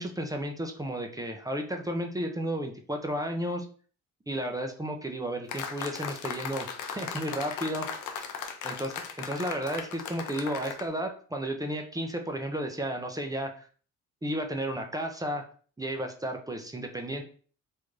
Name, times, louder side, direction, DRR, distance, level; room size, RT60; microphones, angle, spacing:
voice 1, 0.0-3.7 4.3-7.9 8.6-13.6 14.2-15.4 15.8-17.2, right 1 dB, 10° right, 4 dB, 0.6 m, -33 dB
sound 1, 5.5-10.9, left 7 dB, 80° left, 0.6 m, -37 dB
3.6 x 2.6 x 3.1 m, 0.42 s
cardioid pair, 90°, 30 cm